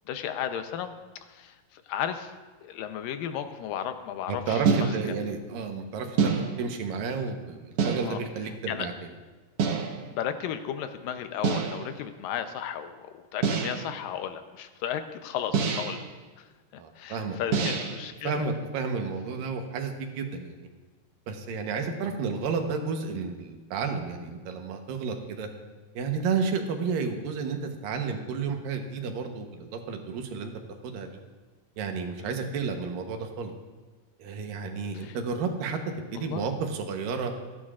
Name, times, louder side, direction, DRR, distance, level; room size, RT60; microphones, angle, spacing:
voice 1, 0.1-2.4 2.6-5.2 8.0-8.2 8.7-8.9 10.1-16.1 16.4-18.5 21.8-22.1 32.2-32.5 34.9-35.2 36.2-36.5, left 9 dB, 90° left, 8 dB, 2.5 m, -35 dB
voice 2, 4.3-6.3 6.6-8.9 16.8-17.7 18.2-20.7 21.3-25.5 26.0-30.5 30.8-31.2 31.8-33.5 34.2-35.8 36.1-37.3, right 5 dB, 85° right, 4 dB, 2.8 m, -31 dB
sound 1, 4.7-5.3 6.2-6.8 7.8-8.4 9.6-10.1 11.4-11.9 13.4-14.0 15.5-16.1 17.5-18.1, right 6 dB, 60° right, 1.7 m, -27 dB
26.5 x 10.5 x 2.5 m, 1.3 s
omnidirectional pair, 3.8 m